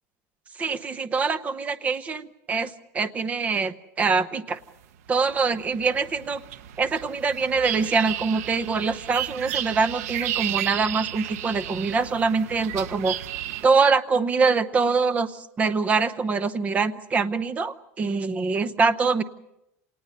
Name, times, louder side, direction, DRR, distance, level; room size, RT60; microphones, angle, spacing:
voice 1, 0.6-4.6 5.1-6.4 6.8-13.2 13.6-19.2, right 4 dB, 15° right, 14 dB, 0.8 m, -24 dB
sound 1, 4.8-13.7, right 12 dB, 90° right, 0.9 m, -33 dB
27.5 x 19.0 x 6.8 m, 0.84 s
supercardioid pair, 165°, 8 cm